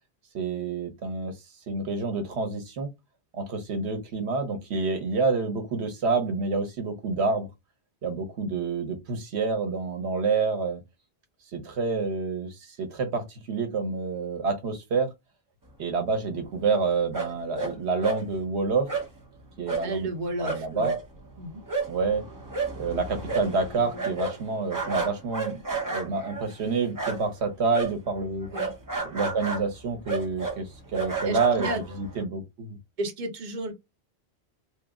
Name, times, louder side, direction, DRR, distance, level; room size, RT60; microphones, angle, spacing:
voice 1, 0.3-1.4 1.7-2.9 3.3-7.5 8.0-10.8 11.5-15.1 15.8-18.9 19.6-20.1 20.4-20.9 21.9-22.2 22.8-25.6 25.9-28.5 29.0-32.8, right 4 dB, 85° right, 1.1 m, -28 dB
sound 1, 17.1-17.7 18.0-18.2 18.9-19.1 19.7-19.9 20.1-20.2 20.4-27.4 27.7-32.2, right 4 dB, 20° right, 0.6 m, -32 dB
voice 2, 19.8-20.9 21.4-21.6 28.5-28.7 31.2-31.8 33.0-33.7, right 1 dB, 50° right, 0.8 m, -32 dB
3.1 x 2.0 x 3.5 m
omnidirectional pair, 1.1 m